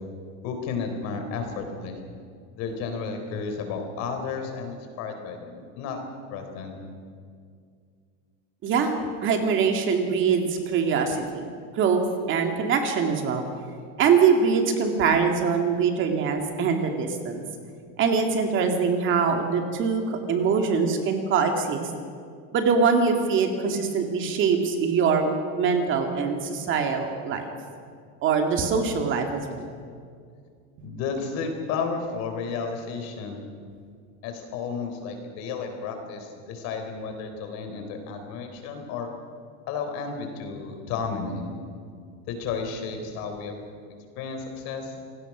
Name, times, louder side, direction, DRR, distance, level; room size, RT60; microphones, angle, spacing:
voice 1, 0.4-2.0 2.6-6.0 6.3-6.8 30.8-33.4 34.2-39.1 39.7-41.4 42.3-43.6 44.2-44.9, left 5 dB, 50° left, 5 dB, 4.1 m, -32 dB
voice 2, 8.6-8.9 9.2-11.4 11.7-13.4 14.0-17.4 18.0-21.9 22.5-25.3 25.6-27.5 28.2-29.7, right 5 dB, 35° right, 4 dB, 2.2 m, -23 dB
27.5 x 17.5 x 6.1 m, 2.2 s
supercardioid pair, 155°, 35 cm